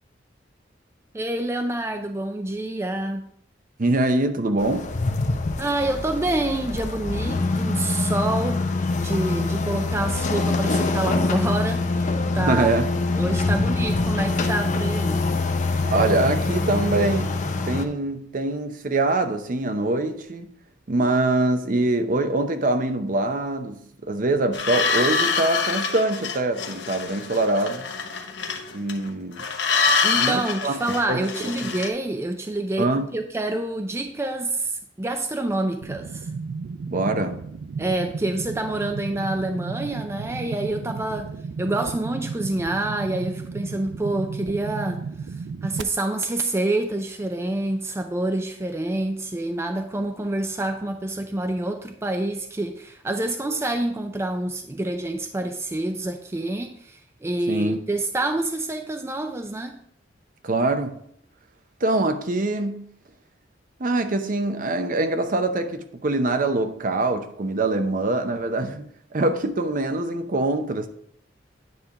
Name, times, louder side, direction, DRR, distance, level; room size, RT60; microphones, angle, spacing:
voice 1, 1.1-3.3 5.6-8.6 9.0-12.7 13.2-15.3 30.0-36.3 37.8-41.3 41.6-45.0 45.6-59.8, right 2 dB, 15° right, 0.4 m, -27 dB
voice 2, 3.8-4.9 12.3-12.9 15.9-17.3 17.7-20.5 20.9-27.9 28.7-29.4 30.2-30.8 31.1-31.2 32.8-33.1 36.9-37.4 57.5-57.8 60.4-61.0 61.8-62.9 63.8-68.9 69.1-70.9, right 2 dB, 50° right, 0.7 m, -24 dB
sound 1, 4.6-17.8, left 3 dB, 45° left, 0.6 m, -24 dB
sound 2, 24.5-29.1 29.4-31.9, left 4 dB, 70° left, 0.9 m, -25 dB
sound 3, 35.8-45.8, right 5 dB, 90° right, 0.4 m, -34 dB
9.4 x 3.3 x 5.7 m
head